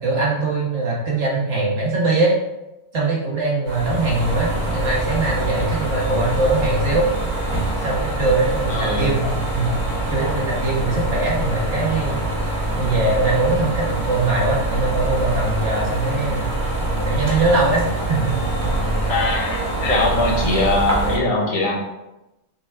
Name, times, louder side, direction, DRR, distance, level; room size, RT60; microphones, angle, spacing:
voice 1, 0.0-2.3 2.9-7.1 7.8-9.2 9.5-9.8 10.1-12.3 12.8-16.5 17.0-18.4, right 2 dB, 60° right, -4 dB, 1.5 m, -21 dB
sound 1, 3.7-21.2, right 2 dB, 40° right, 1.0 m, -24 dB
voice 2, 8.7-9.1 19.1-21.8, left 2 dB, 85° left, -1 dB, 1.4 m, -21 dB
6.5 x 2.3 x 3.3 m, 0.95 s
omnidirectional pair, 1.4 m